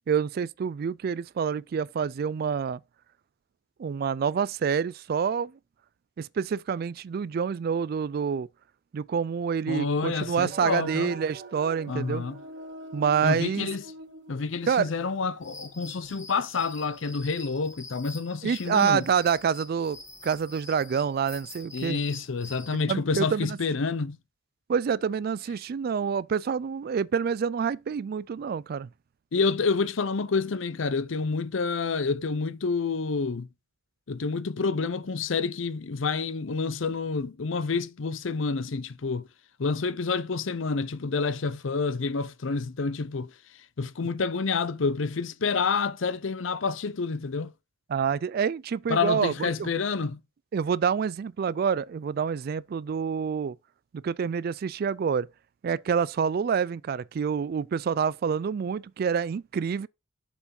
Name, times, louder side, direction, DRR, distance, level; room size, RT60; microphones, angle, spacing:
voice 1, 0.1-2.8 3.8-5.5 6.2-8.5 8.9-12.2 12.9-13.7 14.7-14.9 18.4-22.0 22.9-23.6 24.7-28.9 47.9-49.7 50.5-53.6 54.0-55.3 55.6-59.9, right 6 dB, 50° right, 0.3 m, -27 dB
voice 2, 9.7-11.1 11.9-12.4 13.2-13.9 14.3-19.1 21.7-24.2 29.3-33.5 34.1-39.3 39.6-43.3 43.8-47.5 48.9-50.2, left 4 dB, 75° left, 0.6 m, -28 dB
sound 1, 10.5-15.3, right 2 dB, 65° right, 1.7 m, -43 dB
sound 2, 15.4-22.8, left 3 dB, 15° left, 1.6 m, -46 dB
7.0 x 4.5 x 5.3 m
head